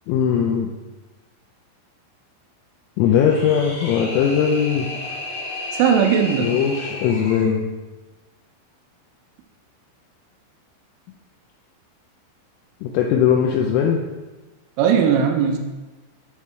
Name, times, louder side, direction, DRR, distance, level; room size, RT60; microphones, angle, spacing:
voice 1, 0.1-0.7 3.0-4.9 6.4-7.7 12.8-14.0, left 7 dB, 85° left, 1 dB, 3.0 m, -19 dB
sound 1, 3.0-7.5, left 2 dB, 55° left, 2.2 m, -33 dB
voice 2, 5.7-6.5 14.8-15.6, right 7 dB, 85° right, 4 dB, 3.1 m, -18 dB
8.2 x 3.6 x 4.3 m, 1.2 s
omnidirectional pair, 5.9 m